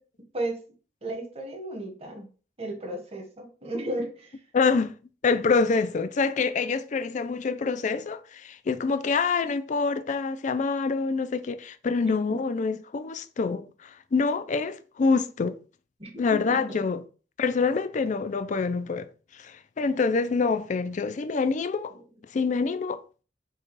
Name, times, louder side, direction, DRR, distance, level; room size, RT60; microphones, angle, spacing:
voice 1, 1.0-2.3 2.6-4.4 12.0-12.4 16.0-16.8, right 1 dB, 35° right, 1.3 m, -34 dB
voice 2, 4.5-4.9 5.2-15.6 16.2-17.0 17.4-21.9 22.3-23.0, left 4 dB, 45° left, 0.4 m, -26 dB
4.6 x 2.3 x 4.6 m
head